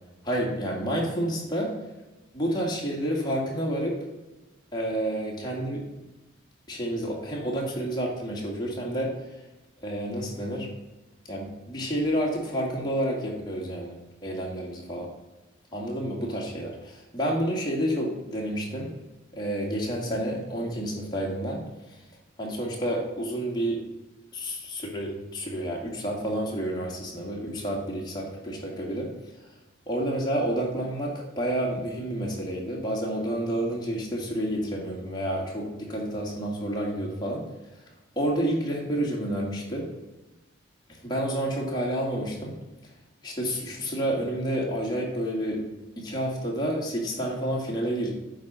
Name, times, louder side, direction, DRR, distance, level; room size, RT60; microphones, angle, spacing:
voice 1, 0.2-1.7 2.3-4.0 4.7-5.8 6.7-9.1 9.8-10.7 11.3-15.1 15.7-18.9 19.3-21.6 22.4-23.8 24.3-29.1 29.9-37.4 38.2-39.9 41.0-42.5 43.2-45.6 46.0-48.1, right 1 dB, 20° left, -3 dB, 2.0 m, -29 dB
9.4 x 4.1 x 6.1 m, 1.0 s
head